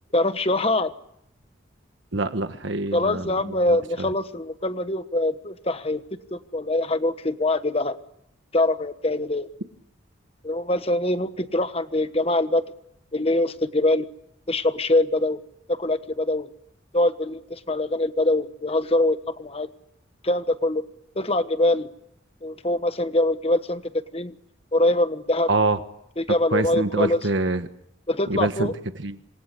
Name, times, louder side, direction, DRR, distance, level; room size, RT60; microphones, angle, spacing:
voice 1, 0.1-0.9 2.9-6.0 6.3-8.0 8.5-9.5 10.4-12.6 13.1-14.1 14.5-15.4 15.7-16.5 16.9-19.7 20.2-20.8 21.2-21.9 22.4-23.8 24.1-24.3 24.7-25.5 26.2-27.2 28.1-28.7, left 1 dB, 30° left, 10 dB, 1.3 m, -23 dB
voice 2, 2.1-4.1 25.5-25.8 26.5-27.7 28.3-28.7 29.0-29.2, right 2 dB, 65° right, 9 dB, 1.4 m, -25 dB
27.5 x 23.5 x 8.4 m, 0.77 s
head